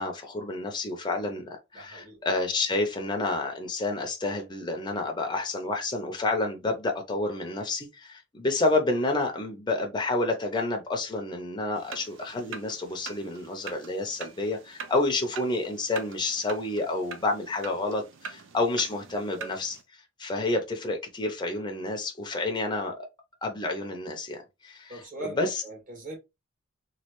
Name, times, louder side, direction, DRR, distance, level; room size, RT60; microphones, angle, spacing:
voice 1, 0.0-19.8 20.2-23.1 23.4-25.0 25.4-25.6, left 2 dB, 20° left, 0.5 m, -29 dB
voice 2, 1.7-2.2 19.3-19.5 24.9-26.2, right 2 dB, 45° right, 1.4 m, -40 dB
sound 1, 11.7-19.8, right 6 dB, 65° right, 0.5 m, -44 dB
3.1 x 2.3 x 2.9 m
head